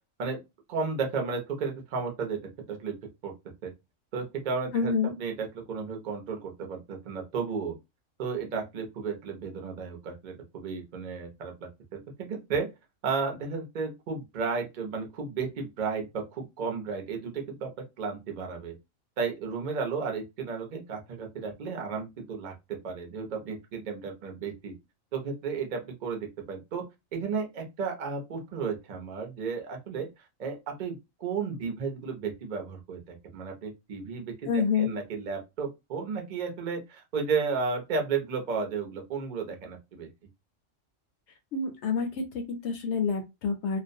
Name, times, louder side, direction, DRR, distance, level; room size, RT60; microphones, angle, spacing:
voice 1, 0.7-2.4 2.7-2.9 3.2-3.3 3.6-3.7 4.1-7.7 8.2-12.7 13.0-17.7 18.0-18.7 19.2-24.7 25.1-26.8 27.1-30.1 30.4-40.1, right 5 dB, 45° right, 2 dB, 0.6 m, -33 dB
voice 2, 4.7-5.1 34.5-34.9 41.5-43.8, left 5 dB, 70° left, 4 dB, 0.8 m, -28 dB
2.4 x 2.1 x 2.5 m, 0.23 s
omnidirectional pair, 1.4 m